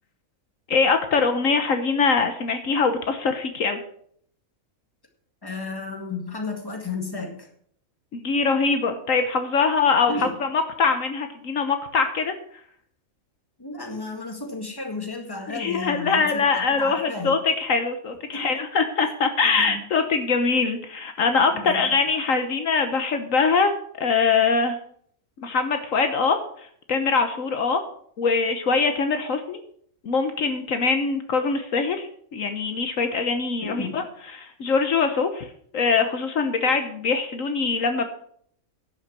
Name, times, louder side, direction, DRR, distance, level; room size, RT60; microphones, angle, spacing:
voice 1, 0.7-3.8 8.1-12.3 15.5-24.8 25.4-26.4 26.9-27.8 28.2-29.6 30.0-34.0 34.3-35.5 35.7-38.0, left 4 dB, 70° left, 7 dB, 1.4 m, -23 dB
voice 2, 5.4-7.5 10.1-10.4 13.6-17.4 18.3-18.5 19.4-19.8 21.5-22.0 33.6-34.1, left 3 dB, 15° left, 3 dB, 2.0 m, -33 dB
11.5 x 6.4 x 7.5 m, 0.64 s
omnidirectional pair, 1.5 m